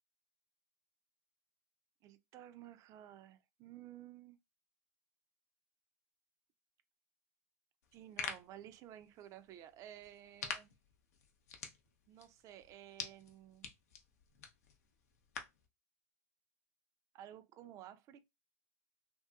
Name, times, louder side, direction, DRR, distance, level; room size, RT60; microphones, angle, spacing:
voice 1, 2.0-4.4 7.9-10.7 12.1-13.7 17.1-18.2, right 12 dB, 40° right, 0.4 m, -54 dB
sound 1, 7.8-15.7, left 6 dB, 80° left, 0.7 m, -48 dB
2.9 x 2.8 x 2.3 m
hypercardioid pair, 115°, 9 cm